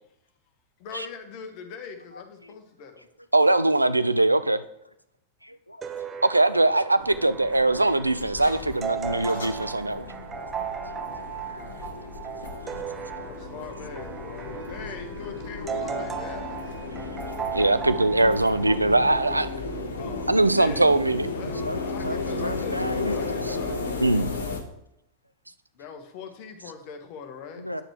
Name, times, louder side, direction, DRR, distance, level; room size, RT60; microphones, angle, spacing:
voice 1, 0.8-3.1 5.9-6.1 11.0-11.3 13.2-16.8 20.0-21.0 21.3-24.1 25.7-27.6, left 6 dB, 45° left, 6 dB, 1.2 m, -41 dB
voice 2, 2.1-2.5 3.0-3.1 3.5-3.6 3.9-4.0 5.4-5.9 6.6-6.7 8.8-9.4 9.9-10.4 10.8-12.8 14.7-14.8 16.4-16.5 16.8-17.7 21.4-23.5 27.5-27.8, equal, 90° left, 11 dB, 0.4 m, -39 dB
voice 3, 3.3-4.6 6.2-10.1 17.5-19.5 20.3-21.3 24.0-24.3, right 2 dB, 85° right, 13 dB, 0.4 m, -21 dB
sound 1, 5.8-19.5, right 7 dB, 20° right, 0.6 m, -36 dB
sound 2, 7.0-24.6, left 3 dB, 70° left, 1.0 m, -34 dB
9.2 x 6.5 x 3.2 m, 0.80 s
figure-of-eight pair, 90°, 0 cm